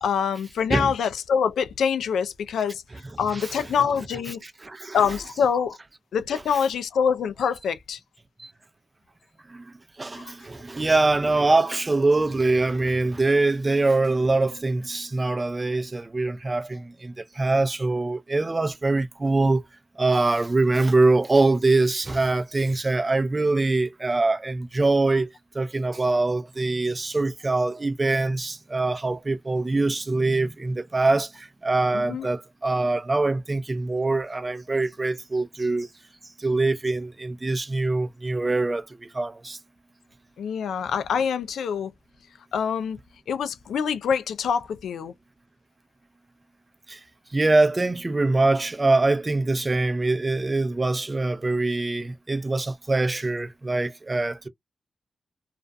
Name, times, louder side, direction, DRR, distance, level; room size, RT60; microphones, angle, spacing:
voice 1, 0.0-2.8 3.2-4.4 4.9-5.8 6.1-8.0 10.1-10.3 31.9-32.3 40.4-41.9 42.5-43.0 43.3-45.1, left 7 dB, 90° left, 0.3 m, -25 dB
voice 2, 3.3-3.7 4.4-5.0 8.4-8.5 9.5-19.6 20.0-25.3 25.5-35.9 36.4-39.6 46.9-47.0 47.3-54.5, right 2 dB, 35° right, 0.5 m, -23 dB
2.4 x 2.2 x 2.5 m
cardioid pair, 45°, 0 cm